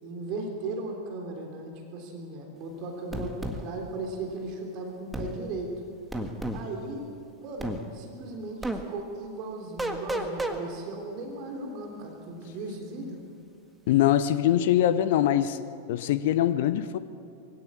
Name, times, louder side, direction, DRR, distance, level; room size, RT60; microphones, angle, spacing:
voice 1, 0.0-5.7 6.5-7.0 7.4-13.2, right 2 dB, 40° right, 2 dB, 3.4 m, -37 dB
sound 1, 3.1-3.6 5.1-5.3 6.1-6.6 7.6-7.8 8.6-8.8 9.8-10.6, right 1 dB, 5° right, 1.8 m, -31 dB
voice 2, 13.9-15.6 15.9-17.0, left 11 dB, 55° left, 13 dB, 0.9 m, -23 dB
22.5 x 16.5 x 8.5 m, 2.3 s
figure-of-eight pair, 90°, 0 cm